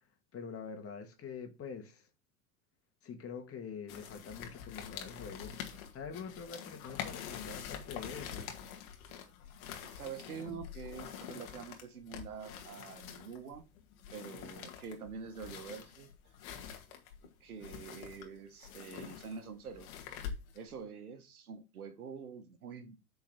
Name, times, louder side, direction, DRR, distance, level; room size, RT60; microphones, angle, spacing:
voice 1, 0.3-2.1 3.0-8.5, left 6 dB, 30° left, 2.0 m, -45 dB
sound 1, 3.9-20.8, left 8 dB, 70° left, 2.0 m, -46 dB
voice 2, 9.8-13.6 14.1-16.1 17.4-19.9 20.5-23.0, right 6 dB, 85° right, 1.4 m, -46 dB
8.8 x 4.7 x 4.2 m
hypercardioid pair, 90°, 44 cm